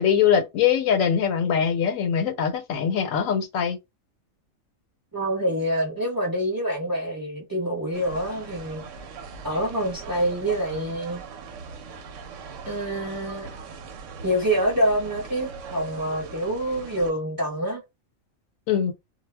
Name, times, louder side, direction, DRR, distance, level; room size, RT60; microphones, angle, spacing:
voice 1, 0.0-3.8 18.7-18.9, left 8 dB, 85° left, 1.0 m, -22 dB
voice 2, 5.1-8.8 9.4-11.2 12.6-13.5 14.2-17.8, right 1 dB, 20° right, 0.7 m, -26 dB
sound 1, 7.9-17.1, right 5 dB, 70° right, 0.9 m, -40 dB
2.3 x 2.1 x 3.2 m
omnidirectional pair, 1.4 m